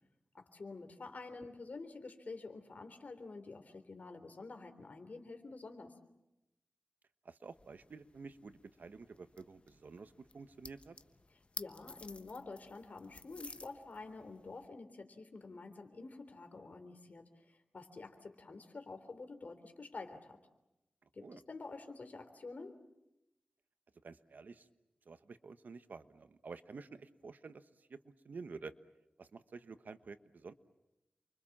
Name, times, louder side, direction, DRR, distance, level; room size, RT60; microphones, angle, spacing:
voice 1, 0.3-5.9 11.6-20.4 21.1-22.8, left 3 dB, 65° left, 8 dB, 3.5 m, -48 dB
voice 2, 7.2-11.0 21.2-21.4 24.0-24.7 25.0-28.7 29.2-30.5, right 4 dB, 85° right, 11 dB, 1.2 m, -50 dB
sound 1, 7.5-14.7, left 3 dB, 40° left, 1.2 m, -53 dB
29.0 x 24.5 x 7.4 m, 0.90 s
wide cardioid pair, 80°, 3 cm